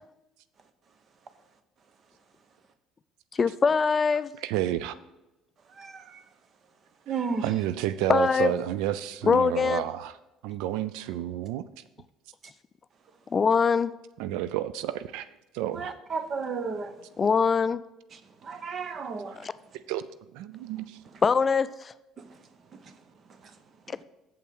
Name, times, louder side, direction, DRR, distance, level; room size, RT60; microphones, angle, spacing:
voice 1, 3.4-4.3 8.1-8.5 9.2-9.8 13.3-13.9 17.2-17.8 19.4-19.5 21.2-21.9 23.9-24.0, left 5 dB, 30° left, 0.3 m, -23 dB
voice 2, 4.4-4.9 7.4-10.1 10.4-11.6 14.2-15.3 15.5-15.9 19.9-20.0 20.3-21.0, right 12 dB, 80° right, 0.3 m, -30 dB
voice 3, 5.8-6.2 7.1-7.5 15.7-16.9 18.1-19.4 21.0-21.1 22.2-22.3, right 5 dB, 45° right, 0.9 m, -33 dB
7.3 x 5.5 x 6.2 m
supercardioid pair, 85°, 0 cm